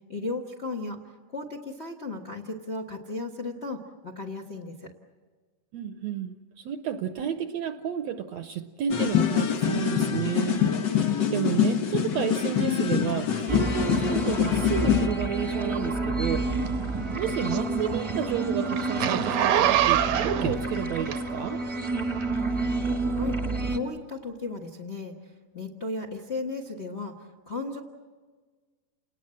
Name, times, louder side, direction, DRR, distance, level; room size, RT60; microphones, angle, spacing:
voice 1, 0.1-1.0 1.3-4.9 23.1-23.4 23.7-25.1 25.5-27.8, left 3 dB, 55° left, 3 dB, 0.7 m, -35 dB
voice 2, 5.7-11.0 11.3-16.6 17.1-21.6, right 9 dB, 70° right, 9 dB, 1.7 m, -31 dB
sound 1, 8.9-15.1, left 8 dB, 80° left, 1.0 m, -25 dB
sound 2, 13.5-23.8, right 2 dB, 20° right, 0.8 m, -29 dB
Zipper (clothing), 16.7-21.6 22.2-22.3, right 11 dB, 85° right, 2.7 m, -25 dB
29.5 x 19.5 x 7.6 m, 1.4 s
omnidirectional pair, 3.8 m